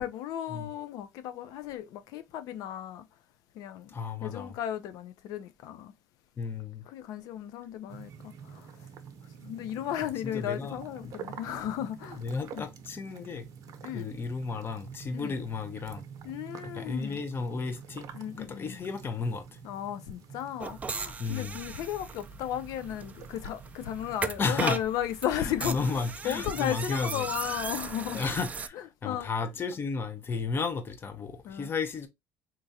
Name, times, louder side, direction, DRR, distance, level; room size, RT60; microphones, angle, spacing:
voice 1, 0.0-3.1 3.5-3.9 4.2-5.9 6.9-8.7 9.4-12.2 12.5-12.7 13.8-14.1 15.1-15.4 16.2-17.2 18.1-18.8 19.6-26.0 26.2-28.2 28.7-29.3 31.4-31.7, left 11 dB, 75° left, 0.6 m, -35 dB
voice 2, 3.9-4.6 6.4-6.8 10.2-10.7 11.0-11.1 12.2-13.5 13.9-16.0 16.7-18.1 18.4-19.6 21.2-21.6 24.4-24.8 25.3-27.3 28.1-32.1, left 4 dB, 35° left, 0.9 m, -33 dB
sound 1, 7.9-24.3, right 7 dB, 60° right, 0.7 m, -47 dB
sound 2, 20.6-28.7, right 5 dB, 25° right, 0.4 m, -38 dB
3.7 x 3.0 x 2.7 m
cardioid pair, 105°, 6 cm